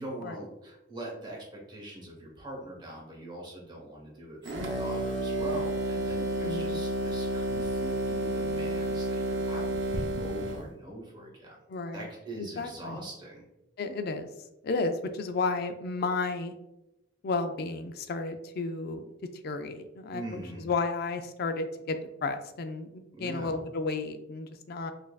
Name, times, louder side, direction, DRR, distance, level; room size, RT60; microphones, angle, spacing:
voice 1, 0.0-11.6 11.9-13.5 20.1-20.7 23.1-23.6, right 1 dB, 25° right, -3 dB, 1.0 m, -42 dB
sound 1, 4.4-10.7, right 1 dB, 65° right, 0.6 m, -31 dB
voice 2, 6.4-6.8 11.7-12.1 12.4-13.0 13.8-14.3 14.6-16.5 17.2-19.0 19.4-22.0 22.2-24.9, left 3 dB, 50° left, 8 dB, 0.4 m, -32 dB
5.2 x 2.6 x 2.3 m, 0.92 s
head